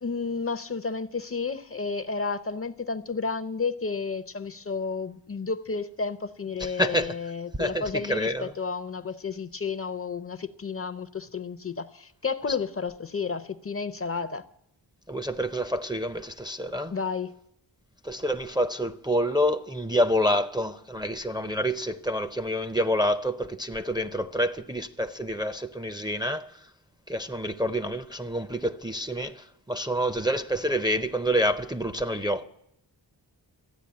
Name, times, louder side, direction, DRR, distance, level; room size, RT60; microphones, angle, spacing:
voice 1, 0.0-14.4 16.9-17.3, left 4 dB, 30° left, 0.6 m, -32 dB
voice 2, 6.6-7.2 7.6-8.5 15.1-16.9 18.0-26.6 27.1-32.4, equal, 10° right, 0.5 m, -27 dB
13.5 x 9.7 x 8.6 m
wide cardioid pair, 100°, 43 cm